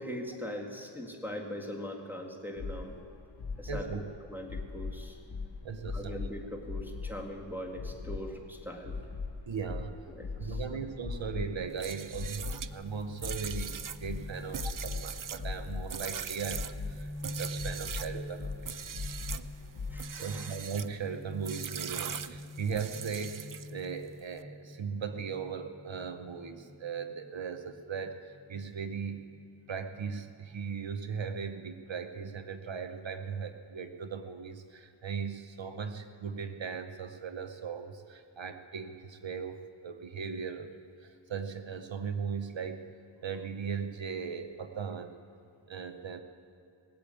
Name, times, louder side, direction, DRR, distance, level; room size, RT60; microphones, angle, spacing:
voice 1, 0.0-3.0 3.6-4.0 4.3-5.2 5.9-9.0 10.2-10.8 19.9-20.5, equal, 5° right, 1 dB, 2.1 m, -41 dB
sound 1, 2.6-20.0, left 4 dB, 60° left, 1.0 m, -41 dB
voice 2, 3.7-4.0 5.6-6.1 9.5-9.9 10.4-18.7 20.2-29.4 29.7-40.7 41.0-42.9 43.2-45.2 45.7-46.2, right 6 dB, 70° right, 8 dB, 0.9 m, -38 dB
sound 2, 11.4-30.6, left 1 dB, 30° right, 2.6 m, -47 dB
sound 3, 11.7-18.2 18.6-19.5 19.9-20.9 21.4-23.9, right 8 dB, 45° right, 0.5 m, -41 dB
19.0 x 8.6 x 8.6 m, 2.6 s
wide cardioid pair, 85°, 46 cm